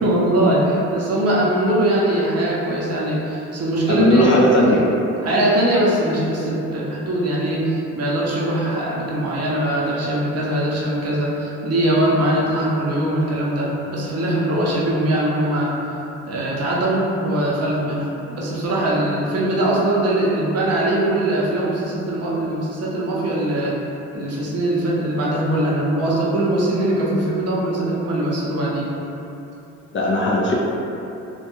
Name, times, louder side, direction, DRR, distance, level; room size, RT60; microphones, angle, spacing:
voice 1, 0.0-4.3 5.2-15.7 16.2-23.8 24.1-28.9, right 1 dB, 55° right, -5 dB, 0.6 m, -21 dB
voice 2, 3.9-4.8 29.9-30.5, left 1 dB, 40° left, -3 dB, 0.4 m, -16 dB
2.2 x 2.2 x 2.9 m, 2.8 s
cardioid pair, 90°, 30 cm